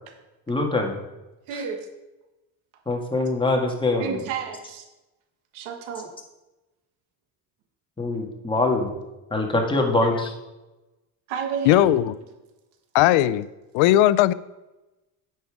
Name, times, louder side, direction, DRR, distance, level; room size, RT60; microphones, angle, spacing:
voice 1, 0.5-1.0 1.5-1.6 2.9-4.2 8.0-8.9 9.3-10.3, left 2 dB, 10° left, 0 dB, 1.8 m, -23 dB
voice 2, 1.5-1.9 4.0-4.8 5.5-6.1 11.3-12.0, right 7 dB, 80° right, 4 dB, 1.6 m, -31 dB
voice 3, 11.6-12.1 12.9-13.5 13.7-14.3, left 13 dB, 75° left, 17 dB, 0.6 m, -18 dB
9.2 x 5.6 x 4.8 m, 1.0 s
supercardioid pair, 95°, 48 cm